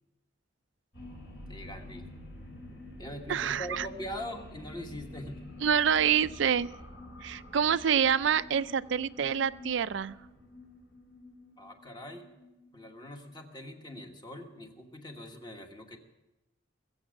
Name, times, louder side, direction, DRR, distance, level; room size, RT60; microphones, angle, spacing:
sound 1, 0.9-13.8, left 1 dB, 65° left, 4.1 m, -48 dB
voice 1, 1.5-2.1 3.0-5.5 11.6-12.3 12.7-16.0, equal, 20° left, 4 dB, 1.3 m, -42 dB
voice 2, 3.3-3.9 5.6-6.7 7.2-10.2, right 8 dB, 65° right, 16 dB, 0.4 m, -27 dB
21.0 x 8.0 x 6.3 m, 1.0 s
head